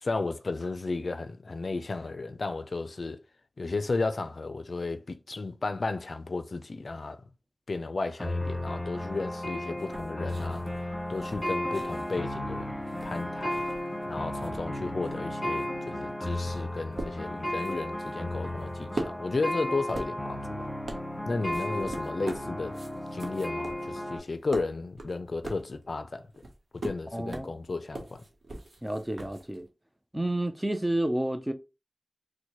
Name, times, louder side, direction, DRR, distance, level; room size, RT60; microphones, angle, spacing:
voice 1, 0.0-3.2 3.6-7.2 7.7-10.6 11.1-13.6 14.1-20.7 21.3-22.8 23.1-26.3 26.7-28.2, left 3 dB, 65° left, 0.4 m, -34 dB
sound 1, 8.2-24.2, left 1 dB, 20° left, 1.6 m, -34 dB
sound 2, 9.8-14.0 14.3-29.7, right 2 dB, 70° right, 0.9 m, -42 dB
voice 2, 27.1-27.5 28.8-29.7 30.1-31.5, right 1 dB, 15° right, 0.5 m, -30 dB
4.3 x 2.1 x 3.0 m
wide cardioid pair, 55°, 0 cm